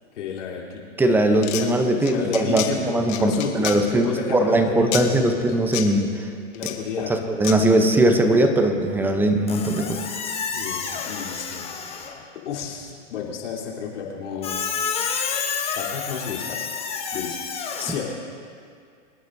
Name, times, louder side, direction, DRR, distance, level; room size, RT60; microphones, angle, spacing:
voice 1, 0.1-0.8 1.2-5.5 6.5-7.2 8.2-8.5 10.5-11.7 12.4-14.7 15.7-16.7 17.1-17.4 17.8-18.3, left 7 dB, 70° left, -4 dB, 3.6 m, -32 dB
voice 2, 1.0-6.3 7.1-10.0, right 1 dB, 5° right, 6 dB, 0.7 m, -20 dB
sound 1, 1.3-1.6 2.1-2.7 3.1-3.8 4.9-5.0 5.7-5.9 6.5-6.7 7.4-7.6, left 14 dB, 40° left, 1.3 m, -28 dB
Squeak, 9.5-12.2 14.4-17.9, left 6 dB, 15° left, 1.1 m, -29 dB
25.5 x 10.0 x 2.7 m, 2.2 s
hypercardioid pair, 135°, 37 cm